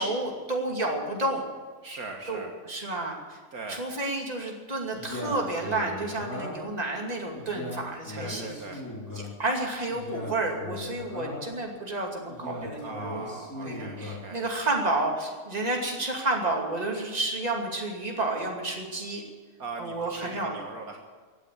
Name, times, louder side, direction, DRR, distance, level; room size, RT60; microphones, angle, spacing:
voice 1, 0.0-1.4 2.3-3.4 3.7-8.5 9.1-13.2 13.6-19.2 19.8-20.6, right 2 dB, 25° right, 0 dB, 2.6 m, -30 dB
voice 2, 1.8-2.5 3.5-3.8 8.2-8.8 12.8-14.4 19.6-21.0, right 3 dB, 65° right, 2 dB, 1.9 m, -40 dB
Male speech man speaking, 4.9-6.8 7.3-9.3 9.9-11.6 12.3-14.3, left 2 dB, 10° left, 4.0 m, -38 dB
16.5 x 9.8 x 8.5 m, 1.5 s
omnidirectional pair, 1.6 m